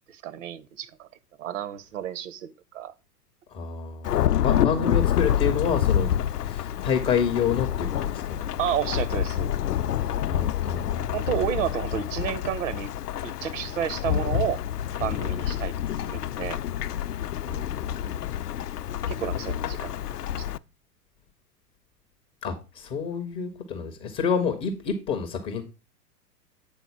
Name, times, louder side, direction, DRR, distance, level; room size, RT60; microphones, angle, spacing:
voice 1, 0.1-1.1 1.4-2.9 8.6-9.5 11.1-12.9 13.2-14.6 15.0-16.6 19.1-19.9 20.4-20.5, right 10 dB, 50° right, 0.8 m, -31 dB
voice 2, 3.5-6.1 6.4-8.4 10.3-11.1 17.5-18.1 22.4-25.6, left 6 dB, 15° left, 0.4 m, -28 dB
Thunderstorm / Rain, 4.0-20.6, left 10 dB, 80° left, 0.5 m, -27 dB
8.2 x 3.8 x 5.7 m
figure-of-eight pair, 105°, 47 cm